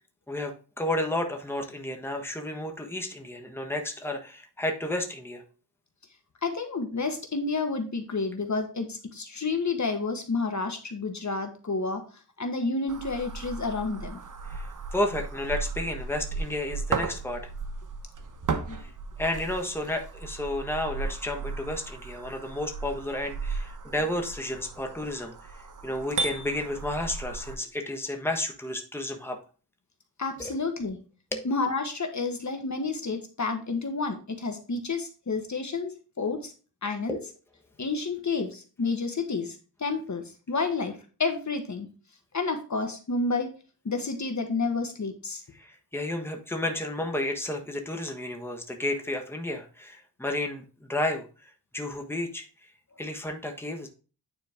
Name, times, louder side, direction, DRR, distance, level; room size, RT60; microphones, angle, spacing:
voice 1, 0.3-5.4 14.5-17.5 18.8-18.9 19.2-25.4 25.8-29.4 30.4-30.5 31.3-31.5 37.1-37.3 45.6-52.4 53.0-53.9, left 1 dB, 5° left, 3 dB, 1.3 m, -32 dB
voice 2, 6.4-12.0 12.4-14.2 18.7-18.8 30.2-31.0 31.4-36.5 36.8-37.2 37.8-41.9 42.3-43.5 43.8-45.4, left 3 dB, 45° left, 5 dB, 1.3 m, -30 dB
sound 1, 12.9-27.6, right 4 dB, 50° right, 1.0 m, -35 dB
9.4 x 4.4 x 3.5 m, 0.36 s
wide cardioid pair, 75°, 39 cm